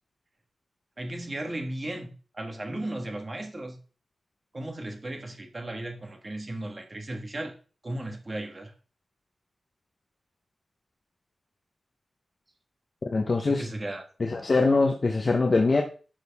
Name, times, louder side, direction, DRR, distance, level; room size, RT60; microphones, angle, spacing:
voice 1, 1.0-3.8 4.5-7.5 7.8-8.7 13.4-14.0, right 1 dB, 25° right, 4 dB, 1.6 m, -35 dB
voice 2, 13.1-13.7 14.2-15.8, left 3 dB, 35° left, 1 dB, 1.0 m, -23 dB
11.5 x 6.5 x 3.6 m, 0.37 s
wide cardioid pair, 165°, 0 cm